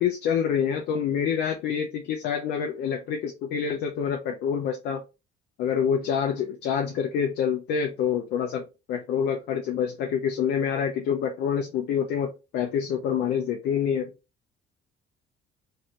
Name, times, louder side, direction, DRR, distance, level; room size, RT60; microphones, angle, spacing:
voice 1, 0.0-5.0 5.6-14.1, left 7 dB, 75° left, 0.6 m, -27 dB
3.1 x 2.7 x 2.9 m
cardioid pair, 110°, 17 cm